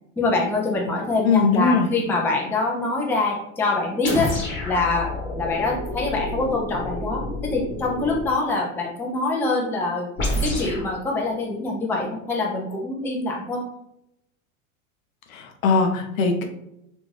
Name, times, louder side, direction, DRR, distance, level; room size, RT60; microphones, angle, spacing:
voice 1, 0.2-4.3 4.6-5.1 5.4-10.1 10.4-13.6, left 3 dB, 5° left, -1 dB, 0.3 m, -24 dB
voice 2, 1.2-1.9 15.3-16.5, left 4 dB, 80° left, 4 dB, 0.7 m, -20 dB
sound 1, 4.0-8.3 10.2-10.9, left 1 dB, 30° left, 1.0 m, -29 dB
2.5 x 2.2 x 3.1 m, 0.82 s
hypercardioid pair, 110°, 41 cm